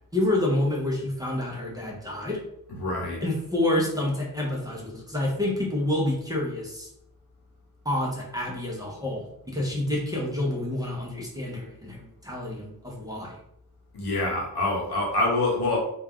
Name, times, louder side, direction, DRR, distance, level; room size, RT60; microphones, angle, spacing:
voice 1, 0.1-2.4 3.2-6.9 7.9-13.3, left 1 dB, 10° right, -3 dB, 0.5 m, -28 dB
voice 2, 2.8-3.2 13.9-15.8, left 2 dB, 85° left, -2 dB, 0.9 m, -25 dB
2.3 x 2.2 x 3.4 m, 0.75 s
wide cardioid pair, 170°, 38 cm